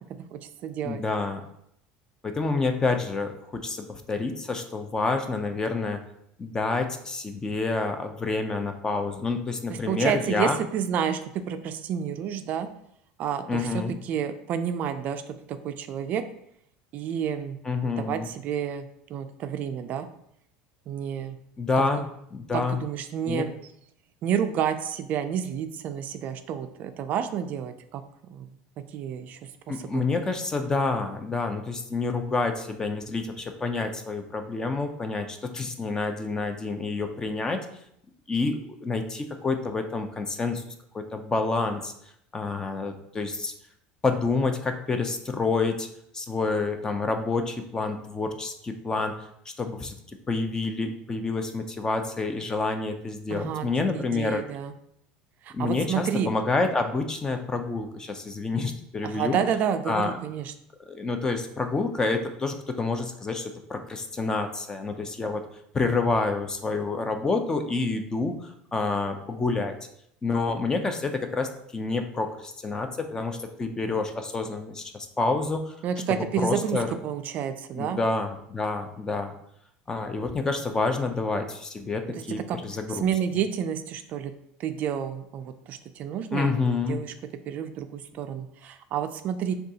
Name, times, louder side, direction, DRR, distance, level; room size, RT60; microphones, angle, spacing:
voice 1, 0.3-1.0 9.7-11.2 11.5-12.7 13.2-16.2 16.9-20.1 20.9-21.4 22.5-23.5 24.2-28.0 28.3-28.5 28.9-29.4 29.7-30.0 53.3-53.7 53.9-54.7 55.4-56.3 59.0-60.5 75.8-76.8 77.0-78.0 82.5-82.6 82.9-84.3 84.6-87.1 87.5-89.5, right 8 dB, 45° right, 9 dB, 0.3 m, -30 dB
voice 2, 0.8-1.4 2.2-6.0 6.4-10.6 13.5-13.9 17.6-18.3 21.6-22.8 23.3-23.4 29.7-37.6 38.3-40.6 40.9-41.9 42.3-43.5 44.0-45.9 46.1-49.1 49.6-49.9 50.3-54.4 55.5-59.4 59.9-60.2 60.9-65.4 65.7-69.8 70.2-75.7 76.4-77.0 77.7-79.3 79.9-83.1 86.3-87.0, left 3 dB, 20° left, 6 dB, 0.5 m, -28 dB
6.2 x 2.3 x 2.8 m, 0.74 s
supercardioid pair, 125°, 4 cm